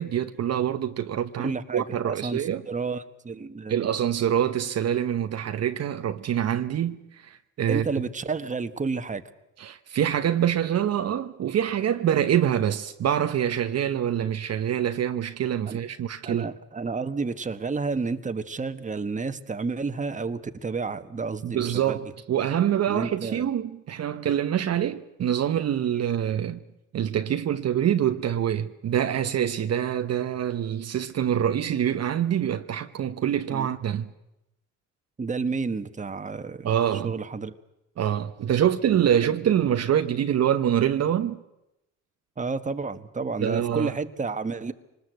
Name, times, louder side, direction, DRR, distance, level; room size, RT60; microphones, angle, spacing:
voice 1, 0.0-2.6 3.7-7.9 9.6-16.5 21.4-26.6 26.9-34.1 36.6-37.1 38.0-41.4 43.4-43.9, right 10 dB, 55° right, 1.0 m, -25 dB
voice 2, 1.4-3.7 7.7-9.2 14.2-14.3 15.7-15.8 16.2-22.0 22.9-23.5 33.5-33.7 35.2-36.7 37.0-37.5 42.4-44.7, right 4 dB, 25° right, 1.4 m, -31 dB
25.0 x 20.0 x 8.0 m
cardioid pair, 90°, 30 cm